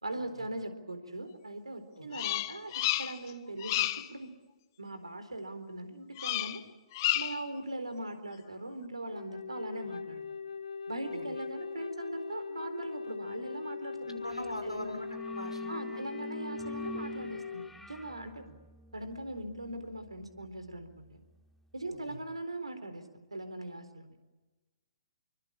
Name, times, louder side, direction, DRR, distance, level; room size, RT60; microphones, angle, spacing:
voice 1, 0.0-2.7 3.0-4.3 4.8-6.6 7.1-10.4 10.9-14.2 14.6-15.0 15.7-18.5 18.9-21.2 21.7-23.0 23.3-24.2, right 1 dB, 80° right, 10 dB, 4.1 m, -40 dB
Bird vocalization bird call bird song, 2.1-3.3 3.6-4.1 6.2-6.6 6.9-7.5, left 15 dB, 40° left, 1.2 m, -31 dB
Wind instrument woodwind instrument, 9.1-17.7, left 5 dB, 65° left, 0.9 m, -40 dB
voice 2, 14.2-16.0 22.1-22.2, equal, 90° left, 8 dB, 5.9 m, -42 dB
sound 1, 14.3-14.6 14.8-21.5, equal, 5° left, 2.6 m, -47 dB
28.0 x 24.0 x 8.8 m, 1.2 s
figure-of-eight pair, 120°, 3 cm